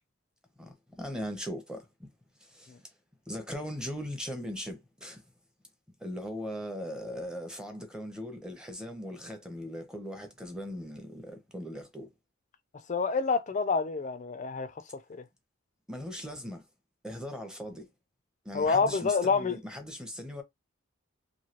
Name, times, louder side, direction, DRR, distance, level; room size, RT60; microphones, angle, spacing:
voice 1, 0.6-2.1 2.4-2.8 3.3-5.2 6.0-12.1 15.9-16.7 17.0-17.9 18.4-20.4, equal, 5° right, 0.6 m, -39 dB
voice 2, 12.9-14.7 15.1-15.2 18.5-19.6, left 4 dB, 35° left, 0.4 m, -27 dB
3.1 x 2.6 x 2.8 m
head